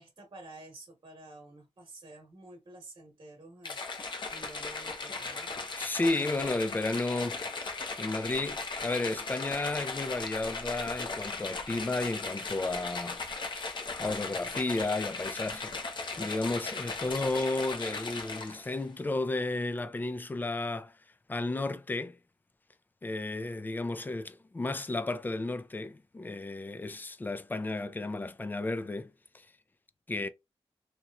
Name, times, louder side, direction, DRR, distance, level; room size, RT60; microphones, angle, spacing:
voice 1, 0.0-5.5, right 2 dB, 45° right, 1.1 m, -50 dB
sound 1, 3.6-18.8, left 3 dB, 50° left, 0.7 m, -37 dB
voice 2, 5.8-13.2 14.0-15.8 16.2-20.9 21.3-22.2 23.0-29.5 30.1-30.3, left 2 dB, 20° left, 0.3 m, -33 dB
2.9 x 2.9 x 2.3 m
wide cardioid pair, 105°, 11 cm